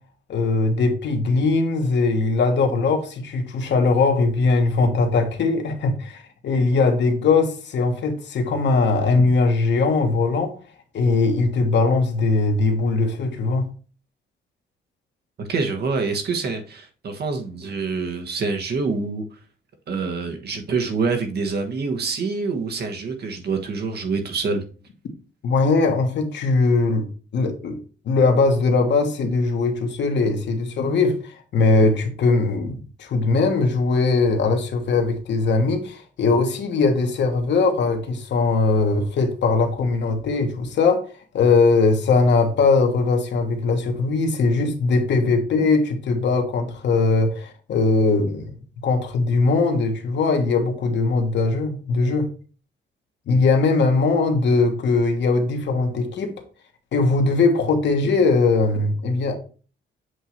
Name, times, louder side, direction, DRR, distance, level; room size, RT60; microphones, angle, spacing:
voice 1, 0.3-10.5 10.9-13.6 25.4-27.1 27.3-41.0 41.3-48.6 48.8-52.3 53.3-56.3 56.9-59.4, left 3 dB, 65° left, 1.3 m, -20 dB
voice 2, 15.5-19.2 19.9-24.6, right 4 dB, 55° right, 1.3 m, -26 dB
7.9 x 2.7 x 4.5 m
cardioid pair, 90°, 20 cm